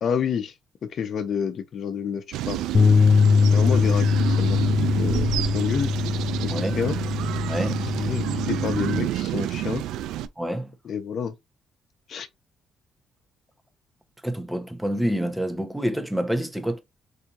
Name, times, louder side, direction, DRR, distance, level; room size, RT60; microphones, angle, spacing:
voice 1, 0.0-0.5 0.8-2.6 3.5-4.1 4.4-4.6 5.0-5.9 6.4-7.0 8.0-9.8 10.8-11.4 12.1-12.3, left 7 dB, 60° left, 0.7 m, -29 dB
sound 1, 2.3-10.3, right 12 dB, 90° right, 0.3 m, -29 dB
sound 2, 2.7-9.0, left 5 dB, 40° left, 0.3 m, -22 dB
voice 2, 6.5-6.8 7.5-7.8 10.4-10.7 14.2-16.8, equal, 5° right, 0.9 m, -27 dB
4.3 x 2.8 x 2.5 m
cardioid pair, 90°, 0 cm